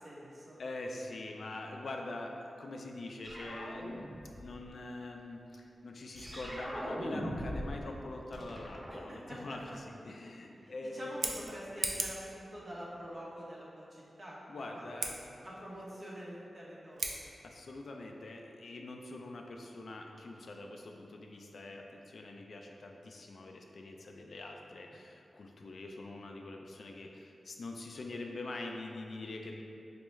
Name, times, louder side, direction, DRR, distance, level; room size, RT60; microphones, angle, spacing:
voice 1, 0.0-0.6 8.9-9.4 10.6-14.4 14.7-14.9 15.4-17.2, equal, 45° right, -6 dB, 0.9 m, -46 dB
voice 2, 0.6-11.1 14.5-15.2 17.2-29.6, left 2 dB, 70° left, 2 dB, 0.3 m, -44 dB
sound 1, 3.2-4.6 6.2-7.8 8.1-9.7, equal, 30° right, 0.6 m, -41 dB
Scissors, 11.0-12.3 14.9-15.1 16.9-17.2, right 3 dB, 75° right, 0.3 m, -36 dB
4.2 x 2.3 x 3.0 m, 2.5 s
cardioid pair, 50°, 0 cm